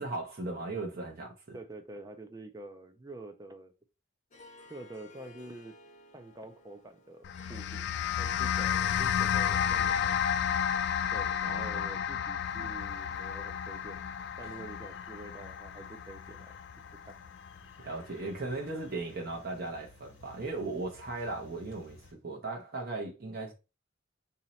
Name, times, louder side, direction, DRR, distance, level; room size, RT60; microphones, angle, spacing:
voice 1, 0.0-1.6 11.4-11.9 17.8-23.5, right 2 dB, 50° right, 0.8 m, -37 dB
voice 2, 1.5-3.7 4.7-5.8 6.1-7.8 8.2-10.2 11.1-14.1 14.4-16.5 17.0-17.1, right 2 dB, 20° right, 0.4 m, -47 dB
Harp, 4.3-9.8, left 2 dB, 40° left, 0.8 m, -55 dB
sound 1, 7.2-17.8, left 8 dB, 60° left, 0.3 m, -32 dB
sound 2, 12.4-22.1, left 2 dB, 85° left, 0.9 m, -57 dB
2.9 x 2.8 x 4.1 m
head